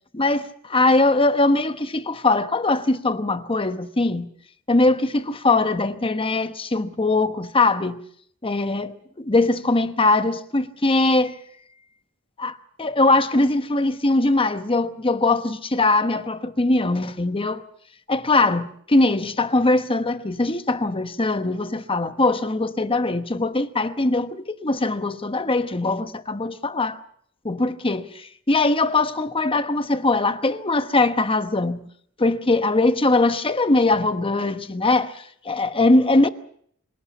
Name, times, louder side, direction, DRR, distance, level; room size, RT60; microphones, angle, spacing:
voice 1, 0.1-4.3 4.7-8.0 8.4-11.4 12.4-17.6 18.1-27.0 27.4-31.8 32.2-36.3, left 2 dB, 25° left, 1.1 m, -21 dB
26.0 x 17.5 x 7.2 m
head